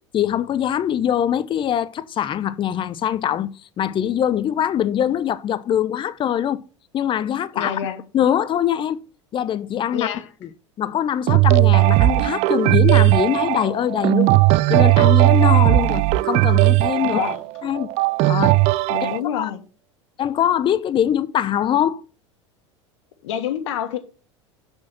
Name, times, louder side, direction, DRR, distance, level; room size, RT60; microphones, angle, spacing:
voice 1, 0.1-6.6 6.9-7.8 8.1-9.0 9.3-10.1 10.8-14.3 14.7-17.2 17.6-17.9 18.3-18.6 19.0-19.1 19.4-19.5 20.2-22.0, left 10 dB, 30° left, 0.7 m, -22 dB
voice 2, 7.5-8.0 9.9-10.3 17.0-17.4 18.9-19.6 23.2-24.0, left 10 dB, 70° left, 1.5 m, -27 dB
sound 1, 11.3-19.2, right 20 dB, 45° right, 0.4 m, -17 dB
6.3 x 6.1 x 5.9 m
hypercardioid pair, 85°, 16 cm